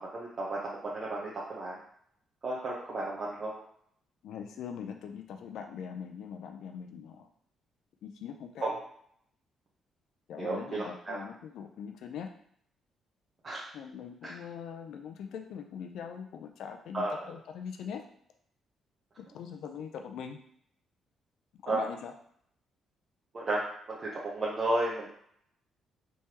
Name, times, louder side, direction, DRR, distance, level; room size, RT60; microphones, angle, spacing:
voice 1, 0.0-1.8 2.4-3.5 8.6-8.7 10.4-11.2 13.4-13.6 16.9-17.3 21.7-21.8 23.3-25.1, right 2 dB, 40° right, -5 dB, 0.8 m, -33 dB
voice 2, 4.2-7.3 8.0-8.7 10.3-12.3 13.7-18.0 19.2-20.4 21.6-22.1, left 7 dB, 75° left, 5 dB, 0.4 m, -42 dB
3.4 x 3.1 x 2.9 m, 0.67 s
cardioid pair, 90°, 0 cm